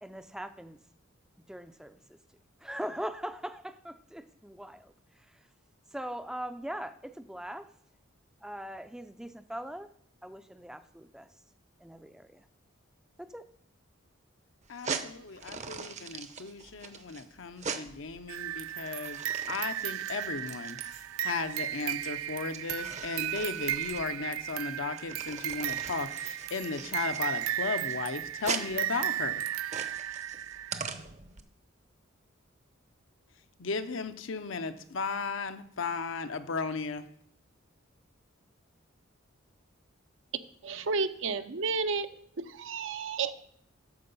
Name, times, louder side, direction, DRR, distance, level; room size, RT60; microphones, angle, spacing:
voice 1, 0.0-0.8 1.5-2.2 2.6-5.5 5.9-7.7 8.4-9.9 10.2-11.3 11.8-12.5 13.2-13.4, equal, 5° right, 10 dB, 0.4 m, -41 dB
sound 1, 14.6-31.4, right 5 dB, 35° right, 0.7 m, -41 dB
voice 2, 14.7-29.3 33.6-37.0, left 4 dB, 65° left, 9 dB, 0.7 m, -36 dB
sound 2, 18.3-30.9, right 12 dB, 85° right, 0.3 m, -35 dB
voice 3, 40.6-43.3, right 4 dB, 65° right, 10 dB, 0.7 m, -32 dB
9.6 x 6.9 x 5.4 m, 0.68 s
head